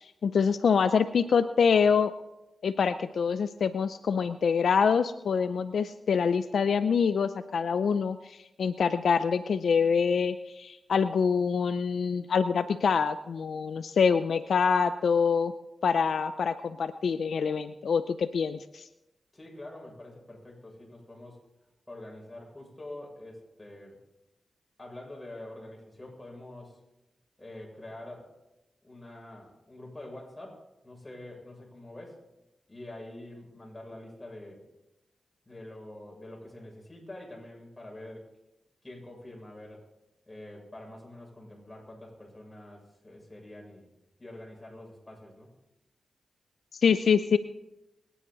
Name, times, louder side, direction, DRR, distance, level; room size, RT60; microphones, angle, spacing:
voice 1, 0.0-2.1 2.6-15.5 15.8-18.9 46.8-47.4, left 6 dB, 80° left, 11 dB, 0.5 m, -25 dB
voice 2, 19.3-21.4 21.9-24.0 24.8-26.8 27.4-28.3 28.8-32.2 32.7-34.6 35.4-38.3 38.8-39.8 40.3-43.9 44.2-45.5, left 1 dB, 20° left, -1 dB, 6.8 m, -46 dB
23.5 x 10.0 x 4.0 m, 0.94 s
cardioid pair, 55°, 0 cm